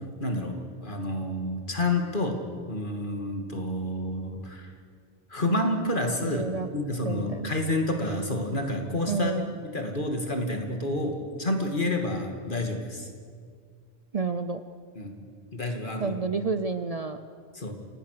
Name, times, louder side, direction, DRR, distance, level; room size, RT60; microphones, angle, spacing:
voice 1, 0.2-2.4 2.7-4.7 5.3-6.5 6.7-13.1 15.0-15.2 15.5-16.2 17.5-17.8, left 1 dB, 50° left, 3 dB, 2.7 m, -29 dB
voice 2, 6.2-6.7 7.0-7.6 9.1-9.5 14.1-14.6 16.0-17.2, right 4 dB, 40° right, 9 dB, 0.7 m, -30 dB
27.5 x 18.5 x 6.8 m, 2.1 s
omnidirectional pair, 1.1 m